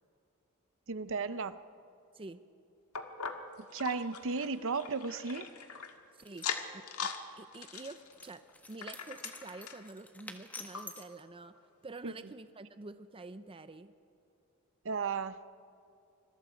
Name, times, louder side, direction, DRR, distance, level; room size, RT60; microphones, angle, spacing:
voice 1, 0.9-1.5 3.7-5.5 12.0-12.3 14.8-15.4, right 4 dB, 60° right, 13 dB, 0.7 m, -35 dB
sound 1, 2.9-5.9 6.3-7.2 7.5-9.9 10.4-10.5 10.7-10.8 11.5-11.6, left 6 dB, 80° left, 1.7 m, -41 dB
voice 2, 6.1-6.5 6.7-7.1 7.4-8.4 8.7-11.5 11.8-13.9, right 3 dB, 25° right, 11 dB, 0.6 m, -48 dB
sound 2, 6.2-6.5 8.1-11.2, left 2 dB, 5° left, 1.5 m, -49 dB
26.5 x 22.0 x 5.1 m, 2.6 s
head